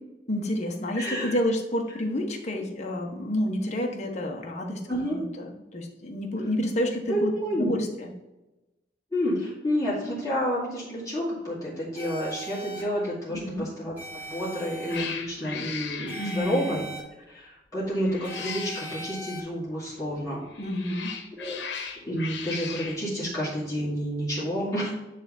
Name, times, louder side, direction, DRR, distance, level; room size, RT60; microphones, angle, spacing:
voice 1, 0.3-4.8 5.1-8.1 13.3-13.7 16.2-16.7 20.6-21.2, left 1 dB, 40° left, 1 dB, 1.1 m, -29 dB
voice 2, 0.9-1.3 4.9-5.2 7.1-7.7 9.1-13.9 14.3-16.8 17.3-20.4 21.4-21.6 22.0-24.9, equal, 20° left, -9 dB, 2.4 m, -29 dB
sound 1, 12.0-12.8 14.0-15.0 16.1-17.0 18.2-19.4, right 2 dB, 10° right, 2.1 m, -40 dB
Cat, 14.2-14.5 14.9-16.9 18.0-19.1 20.4-23.0, left 6 dB, 85° left, 1.0 m, -37 dB
10.0 x 3.4 x 4.0 m, 1.0 s
head